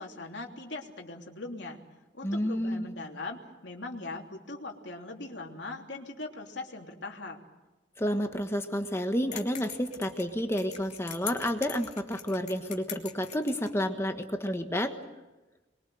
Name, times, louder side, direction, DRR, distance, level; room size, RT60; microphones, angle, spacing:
voice 1, 0.0-1.8 2.1-7.4, left 2 dB, 70° left, 1 dB, 3.3 m, -40 dB
voice 2, 2.2-2.9 8.0-14.9, equal, 15° left, 6 dB, 1.5 m, -30 dB
sound 1, 9.3-13.7, left 9 dB, 40° left, 3.1 m, -42 dB
26.0 x 22.5 x 7.9 m, 1.1 s
head